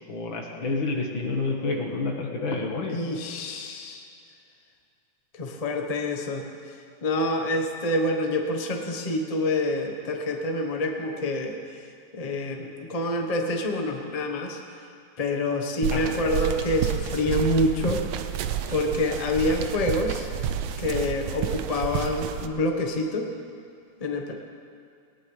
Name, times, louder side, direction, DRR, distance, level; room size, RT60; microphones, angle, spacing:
voice 1, 0.0-3.0 15.9-16.1, left 3 dB, 70° left, 1 dB, 2.3 m, -29 dB
voice 2, 2.9-4.1 5.3-6.4 7.0-11.6 12.1-14.6 15.2-18.0 18.7-20.3 20.8-23.3 24.0-24.3, left 1 dB, 30° left, 2 dB, 0.8 m, -27 dB
sound 1, 15.8-22.5, right 9 dB, 80° right, 1.5 m, -30 dB
19.0 x 18.5 x 3.3 m, 2.4 s
omnidirectional pair, 2.3 m